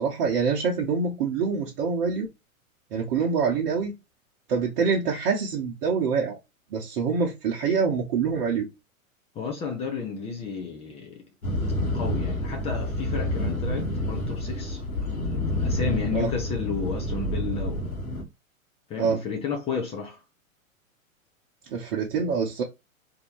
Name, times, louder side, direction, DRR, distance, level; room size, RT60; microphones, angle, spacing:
voice 1, 0.0-2.3 2.9-3.9 4.5-6.4 6.7-8.7 16.1-16.3 19.0-19.2 21.7-22.6, right 5 dB, 40° right, 1.0 m, -25 dB
voice 2, 9.3-11.2 11.9-14.8 15.2-17.9 18.9-20.2, left 5 dB, 15° left, 0.6 m, -32 dB
sound 1, 11.4-18.2, left 1 dB, 85° left, 1.6 m, -28 dB
4.3 x 2.7 x 3.0 m
figure-of-eight pair, 105°, 42 cm